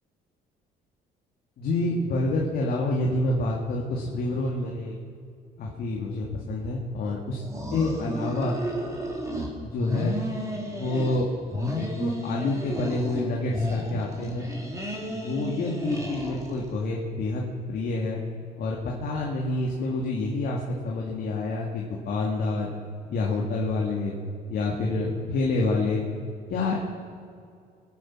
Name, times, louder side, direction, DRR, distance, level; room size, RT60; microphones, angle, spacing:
voice 1, 1.6-5.0 5.6-7.4 7.7-8.5 9.6-10.1 10.7-11.3 11.7-14.5 15.1-18.2 18.6-22.7 23.1-24.1 24.5-26.0 26.5-26.8, left 2 dB, 60° left, -2 dB, 2.1 m, -28 dB
sound 1, 7.4-9.5 9.8-11.3 11.5-13.2 13.5-16.7, equal, 20° right, 2.9 m, -32 dB
23.0 x 9.0 x 6.1 m, 2.3 s
cardioid pair, 110°, 17 cm